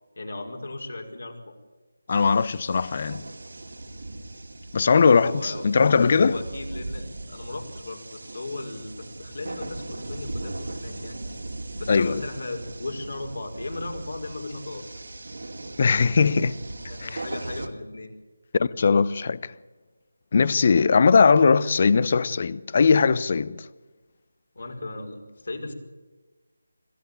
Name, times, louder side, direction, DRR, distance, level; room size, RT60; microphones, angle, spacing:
voice 1, 0.2-1.5 4.9-5.7 6.2-11.2 11.7-14.8 16.9-18.1 24.5-25.7, left 2 dB, 55° left, 5.4 m, -36 dB
voice 2, 2.1-3.2 4.7-6.4 11.9-12.2 15.8-16.5 17.0-17.2 18.5-19.5 20.3-23.7, left 5 dB, 35° left, 0.8 m, -20 dB
sound 1, 2.1-17.7, right 2 dB, 60° right, 2.4 m, -38 dB
26.0 x 16.0 x 9.2 m
figure-of-eight pair, 155°, 0 cm